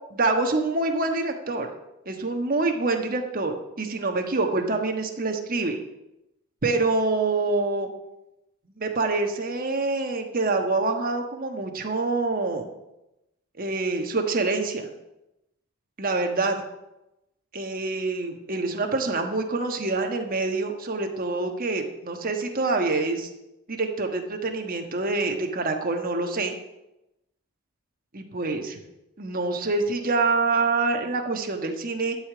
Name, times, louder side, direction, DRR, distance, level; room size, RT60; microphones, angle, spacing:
voice 1, 0.1-1.7 2.0-5.8 6.6-7.9 8.8-12.7 13.6-14.9 16.0-16.6 17.5-23.3 23.7-26.5 28.1-28.8 29.2-32.2, right 3 dB, 40° right, 4 dB, 1.3 m, -26 dB
12.5 x 5.1 x 8.5 m, 0.92 s
head